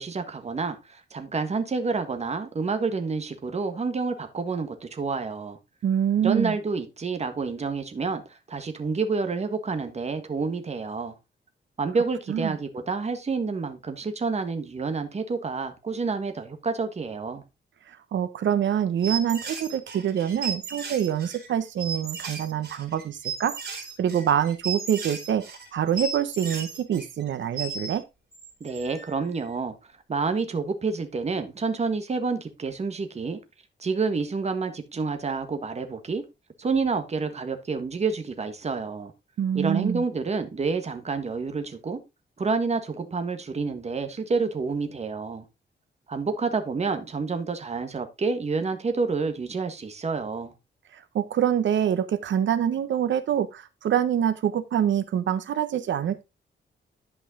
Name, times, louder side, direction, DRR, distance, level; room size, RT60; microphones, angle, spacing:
voice 1, 0.0-5.6 6.2-11.2 11.8-17.4 28.6-29.7 30.1-33.4 33.8-36.2 36.6-39.1 39.5-42.0 42.4-45.4 46.1-50.5, right 4 dB, 35° right, 1.5 m, -28 dB
voice 2, 5.8-6.6 12.3-12.6 17.9-23.5 24.0-25.4 25.7-28.0 39.4-40.0 50.9-56.2, right 9 dB, 85° right, 1.1 m, -25 dB
sound 1, 19.0-28.0 28.3-29.1, right 5 dB, 60° right, 3.9 m, -35 dB
11.0 x 5.5 x 3.7 m
wide cardioid pair, 120°, 19 cm